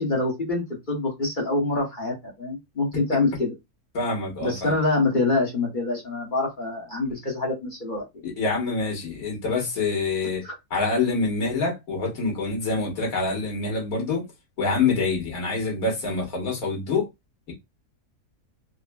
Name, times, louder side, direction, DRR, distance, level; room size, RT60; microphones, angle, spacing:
voice 1, 0.0-3.5 4.4-8.0 10.4-10.5, left 2 dB, 35° left, 1.0 m, -25 dB
voice 2, 3.9-4.7 8.4-10.4 10.7-14.2 14.6-17.1, left 3 dB, 70° left, 1.7 m, -26 dB
3.9 x 2.1 x 2.2 m
omnidirectional pair, 1.6 m